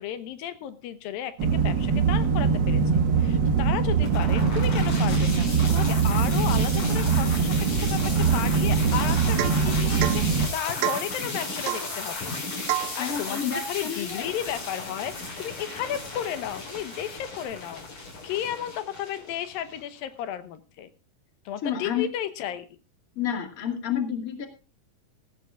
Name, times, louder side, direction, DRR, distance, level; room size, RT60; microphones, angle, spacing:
voice 1, 0.0-12.4 12.8-20.9 21.5-22.7, left 10 dB, 85° left, 11 dB, 2.8 m, -34 dB
sound 1, 1.4-10.5, right 5 dB, 60° right, 1.1 m, -22 dB
sound 2, 4.0-20.0, left 3 dB, 65° left, 6.9 m, -35 dB
Domestic sounds home sounds / Chink clink / Drip, 9.4-9.7 10.0-10.2 10.8-11.1 11.6-11.9 12.7-13.0, right 14 dB, 85° right, 1.5 m, -28 dB
voice 2, 13.0-14.3 21.6-22.1 23.2-24.5, left 8 dB, 30° left, 5 dB, 2.1 m, -29 dB
19.5 x 15.0 x 2.4 m, 0.31 s
omnidirectional pair, 4.0 m